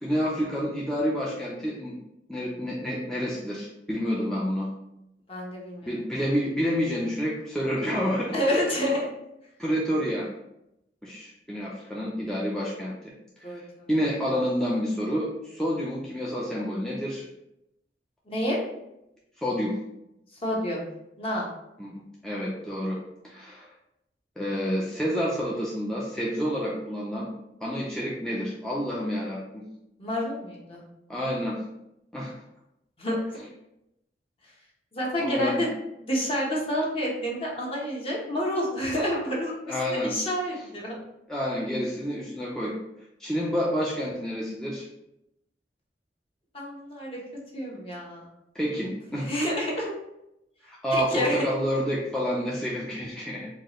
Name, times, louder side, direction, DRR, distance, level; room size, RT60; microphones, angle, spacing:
voice 1, 0.0-2.0 2.3-4.7 5.9-8.4 9.6-10.3 11.0-12.9 13.4-13.5 13.9-17.2 19.4-19.7 21.8-23.7 24.4-27.3 27.6-29.6 31.1-31.6 32.1-32.3 33.4-33.5 35.2-35.6 39.7-40.1 41.3-42.7 43.2-44.9 48.5-49.3 50.6-53.5, equal, 5° left, -6 dB, 0.5 m, -29 dB
voice 2, 5.3-5.9 8.3-9.1 13.4-13.9 18.3-18.6 20.4-20.8 21.2-21.5 30.0-30.8 33.0-33.2 34.9-35.7 36.0-40.9 46.5-47.2 47.5-48.3 49.2-49.9 50.9-51.5, equal, 35° left, -3 dB, 1.0 m, -29 dB
4.6 x 2.4 x 3.0 m, 0.85 s
head